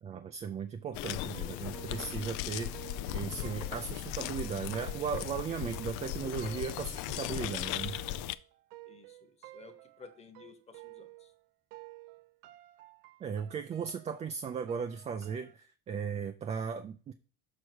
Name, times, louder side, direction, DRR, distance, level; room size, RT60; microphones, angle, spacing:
voice 1, 0.0-8.0 13.2-17.1, right 6 dB, 25° right, 8 dB, 0.3 m, -37 dB
sound 1, 0.9-8.4, left 14 dB, 75° left, 0.5 m, -37 dB
sound 2, 1.3-5.4, left 7 dB, 55° left, 1.5 m, -53 dB
sound 3, 1.3-11.4 11.7-15.5, right 19 dB, 80° right, 0.6 m, -53 dB
voice 2, 8.9-11.3, left 5 dB, 20° left, 7 dB, 1.1 m, -55 dB
6.5 x 5.8 x 4.5 m, 0.38 s
cardioid pair, 150°, 30 cm